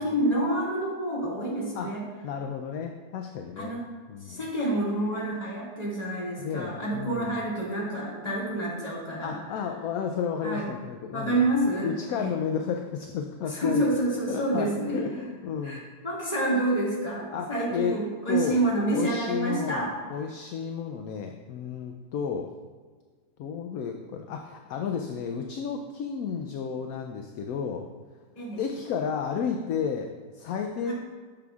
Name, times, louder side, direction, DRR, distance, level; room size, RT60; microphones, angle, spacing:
voice 1, 0.0-2.0 3.6-3.8 4.2-9.4 10.4-10.6 11.1-12.3 13.5-15.0 15.6-19.9 28.4-28.6 30.9-31.0, right 1 dB, 25° left, -6 dB, 2.1 m, -28 dB
voice 2, 2.2-3.7 4.1-4.4 6.4-7.3 9.2-11.4 11.8-13.8 14.3-15.8 17.3-18.0 18.3-18.6 18.9-22.5 23.4-27.9 28.6-30.9, left 6 dB, 70° left, 4 dB, 0.9 m, -32 dB
10.5 x 6.8 x 2.4 m, 1.5 s
omnidirectional pair, 1.7 m